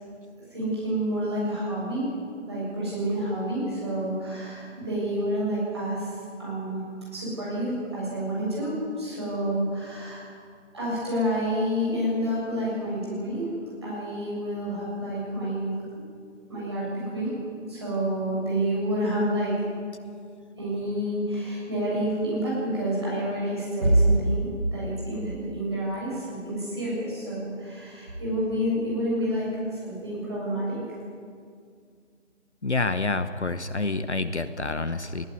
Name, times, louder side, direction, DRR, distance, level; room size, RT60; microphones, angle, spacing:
voice 1, 0.5-2.1 2.5-6.8 7.1-10.3 10.7-13.5 13.8-15.7 16.5-17.3 17.7-19.5 20.6-29.5 29.7-30.8, right 1 dB, 20° right, -7 dB, 7.4 m, -28 dB
voice 2, 32.6-35.3, left 3 dB, 65° left, 12 dB, 1.1 m, -28 dB
20.0 x 16.0 x 9.6 m, 2.2 s
figure-of-eight pair, 175°, 37 cm